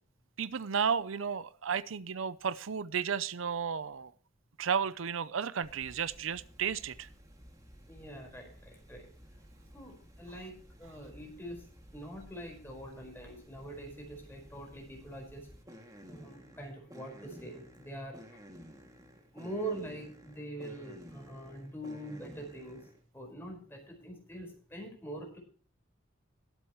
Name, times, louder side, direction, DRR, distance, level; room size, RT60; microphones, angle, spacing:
voice 1, 0.4-4.1 4.6-7.1, right 7 dB, 80° right, 0.6 m, -33 dB
sound 1, 5.6-23.0, equal, 20° right, 2.2 m, -54 dB
voice 2, 7.9-9.1 9.7-11.7 11.9-15.5 16.1-18.4 19.3-22.8 23.1-25.4, right 1 dB, 10° left, 4.6 m, -44 dB
20.0 x 8.1 x 3.0 m
head